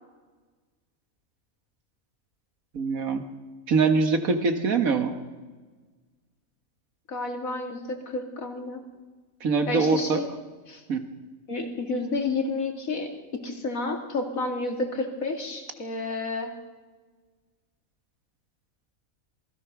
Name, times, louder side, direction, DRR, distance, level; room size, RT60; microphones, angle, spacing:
voice 1, 2.7-3.2 3.7-5.1 9.4-10.2 10.9-11.1, right 4 dB, 75° right, 7 dB, 2.1 m, -23 dB
voice 2, 7.1-8.8 9.7-10.2 10.7-10.8 11.5-16.5, left 3 dB, 70° left, 4 dB, 2.8 m, -30 dB
27.0 x 20.0 x 6.1 m, 1.4 s
omnidirectional pair, 1.5 m